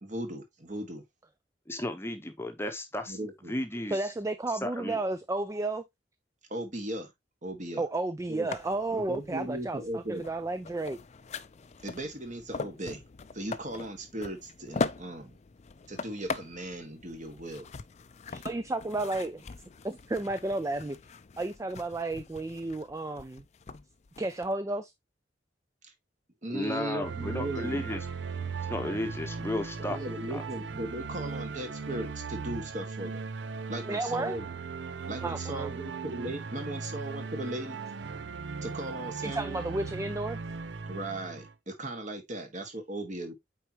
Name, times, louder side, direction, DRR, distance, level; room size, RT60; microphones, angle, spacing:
voice 1, 0.0-1.0 3.1-3.5 6.5-7.1 7.4-7.8 8.3-8.5 8.9-10.2 11.8-13.0 13.3-15.3 15.9-17.7 25.8-25.9 26.4-27.9 29.9-33.2 33.7-34.5 35.1-37.8 38.6-39.6 40.9-43.3, right 1 dB, 45° right, 1.7 m, -37 dB
voice 2, 1.7-3.2 3.5-4.0 4.6-5.0 26.5-28.0 28.7-30.0 30.3-30.4, left 1 dB, 15° left, 0.9 m, -34 dB
voice 3, 3.9-5.9 7.8-11.0 18.3-19.5 19.8-21.0 21.4-23.4 24.2-24.9 33.8-34.4 35.2-35.7 39.2-40.4, right 2 dB, 15° right, 0.4 m, -32 dB
sound 1, 8.5-24.5, left 4 dB, 40° left, 0.5 m, -41 dB
sound 2, 27.0-41.5, right 5 dB, 80° right, 0.6 m, -38 dB
8.2 x 4.4 x 2.9 m
head